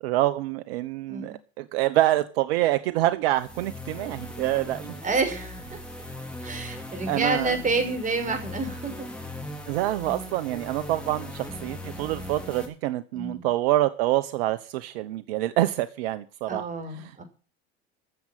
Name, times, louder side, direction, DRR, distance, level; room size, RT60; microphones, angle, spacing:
voice 1, 0.0-5.0 7.1-7.6 9.7-16.6 16.9-17.1, right 15 dB, 70° right, 14 dB, 1.0 m, -26 dB
sound 1, 3.3-12.7, left 1 dB, 5° left, 4.3 m, -39 dB
voice 2, 5.0-5.8 6.4-9.1 13.1-13.5 16.5-17.2, right 3 dB, 25° right, 5 dB, 5.9 m, -29 dB
14.0 x 7.7 x 9.0 m, 0.38 s
hypercardioid pair, 85°, 31 cm